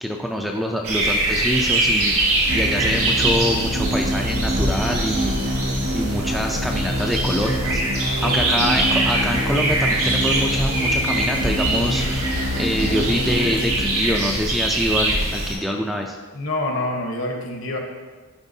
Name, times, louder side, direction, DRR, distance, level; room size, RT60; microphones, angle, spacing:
voice 1, 0.0-5.6 5.9-16.2, equal, ahead, 1 dB, 0.4 m, -25 dB
sound 1, 0.8-15.5, right 2 dB, 85° right, 1.9 m, -23 dB
sound 2, 2.5-14.4, equal, 65° right, 1.4 m, -26 dB
voice 2, 8.1-8.7 16.3-17.8, left 1 dB, 65° left, 2 dB, 1.1 m, -27 dB
10.5 x 4.4 x 2.7 m, 1.3 s
head